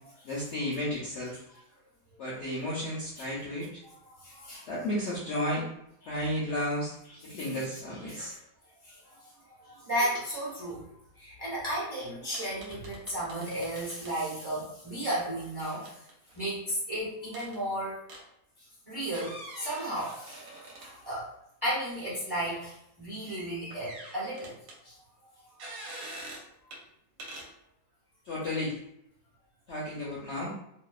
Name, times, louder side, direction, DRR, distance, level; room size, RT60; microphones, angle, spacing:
voice 1, 0.2-1.4 2.2-3.8 4.7-5.7 6.1-7.0 7.2-8.3 28.3-28.7 29.7-30.6, left 1 dB, 65° left, -5 dB, 0.7 m, -33 dB
voice 2, 3.8-4.7 7.3-7.5 8.0-8.4 8.8-9.3 9.6-10.8 11.2-16.0 16.3-18.0 18.9-21.3 21.6-24.5 24.8-25.0, right 1 dB, 20° right, -8 dB, 0.6 m, -34 dB
sound 1, 11.6-11.7 11.9-12.0 12.3-14.1 15.4-16.7 17.3-17.6 18.1-18.2 19.0-21.2 21.6-21.7 23.3-24.8 25.6-26.5 26.7-26.8 27.2-27.5, right 1 dB, 70° right, 1.0 m, -45 dB
2.7 x 2.1 x 2.3 m, 0.76 s
omnidirectional pair, 1.7 m